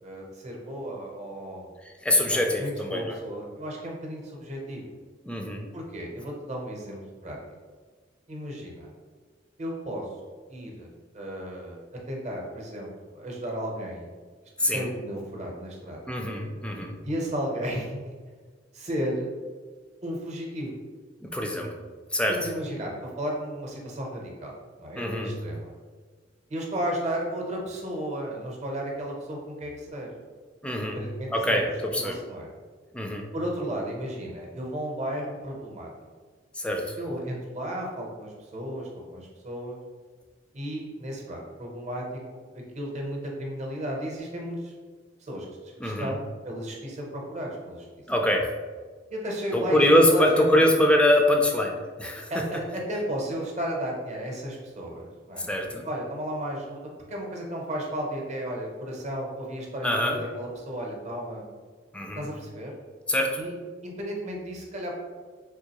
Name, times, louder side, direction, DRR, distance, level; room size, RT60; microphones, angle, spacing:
voice 1, 0.0-1.7 2.1-4.8 5.7-7.4 8.3-8.9 9.6-10.1 10.5-14.1 14.7-16.2 17.0-18.2 18.7-19.3 20.0-20.7 22.3-25.7 26.5-30.1 30.8-31.6 32.0-32.5 33.3-35.9 37.0-39.8 40.5-44.7 45.2-47.9 49.1-50.7 52.3-55.5 55.8-61.4 62.2-62.7 63.4-63.5 63.8-65.0, equal, 40° right, -1 dB, 0.7 m, -34 dB
voice 2, 1.8-3.2 5.2-5.7 14.6-14.9 16.1-17.0 21.2-21.7 22.1-22.4 25.0-25.4 30.6-31.0 31.3-32.2 32.9-33.3 36.5-37.0 45.8-46.2 48.1-48.5 49.5-52.5 55.4-55.9 59.8-60.2 61.9-62.3 63.1-63.4, left 1 dB, 5° left, 2 dB, 0.3 m, -24 dB
3.7 x 3.0 x 2.9 m, 1.5 s
head